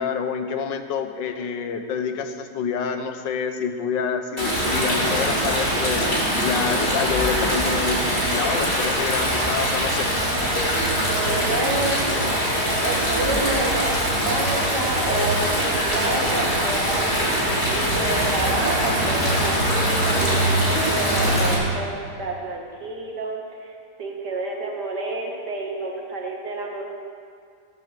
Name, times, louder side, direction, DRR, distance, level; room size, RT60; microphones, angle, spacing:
voice 1, 0.0-6.1 6.4-10.1, left 6 dB, 75° left, 7 dB, 1.7 m, -27 dB
Stream, 4.4-21.5, equal, 35° left, 3.7 m, -22 dB
voice 2, 10.9-12.0 12.8-17.3 17.7-21.9 22.2-23.7 24.0-26.8, right 2 dB, 65° right, 0 dB, 2.5 m, -29 dB
15.5 x 10.5 x 6.7 m, 2.2 s
omnidirectional pair, 2.0 m